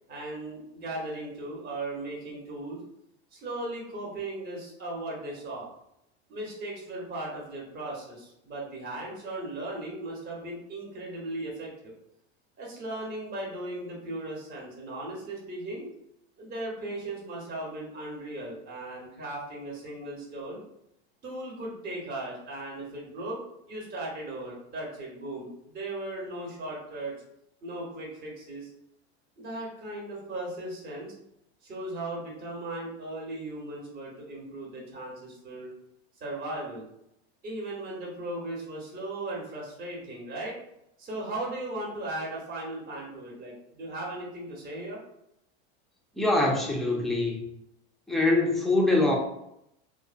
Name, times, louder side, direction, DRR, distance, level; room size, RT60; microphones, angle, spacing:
voice 1, 0.1-2.8 3.3-5.7 6.3-11.9 12.6-15.9 16.4-20.6 21.2-27.1 27.6-28.7 29.4-31.1 31.6-35.7 36.2-36.8 37.4-40.6 41.0-45.0, right 2 dB, 30° right, -2 dB, 0.9 m, -37 dB
voice 2, 46.2-47.4 48.1-49.1, left 2 dB, ahead, -2 dB, 0.4 m, -24 dB
2.6 x 2.1 x 2.4 m, 0.79 s
hypercardioid pair, 110°, 33 cm